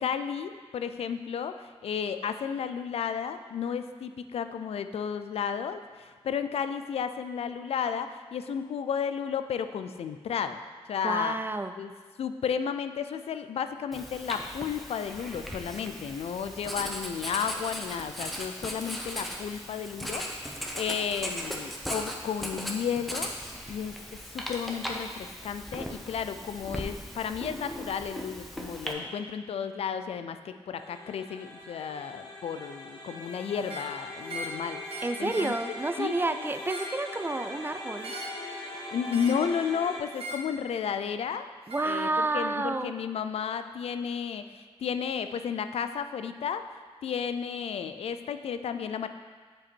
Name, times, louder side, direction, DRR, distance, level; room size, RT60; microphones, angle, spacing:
voice 1, 0.0-10.6 10.9-11.4 11.8-11.9 12.2-23.9 24.3-35.5 36.0-36.5 38.9-41.5 41.8-46.7 47.0-49.1, left 7 dB, 70° left, 10 dB, 0.4 m, -33 dB
voice 2, 11.0-11.7 35.0-38.1 41.7-42.9, right 2 dB, 20° right, 10 dB, 0.3 m, -30 dB
Writing, 13.9-28.9, equal, ahead, 0.9 m, -38 dB
sound 1, 30.7-40.0, left 2 dB, 40° left, 2.4 m, -41 dB
sound 2, 33.6-33.9 34.3-34.6 34.9-35.6 36.5-37.0 38.0-38.4 39.1-39.5 40.1-40.5 41.7-41.9, right 1 dB, 65° right, 0.9 m, -39 dB
7.1 x 5.3 x 4.4 m, 1.5 s
cardioid pair, 80°, 11 cm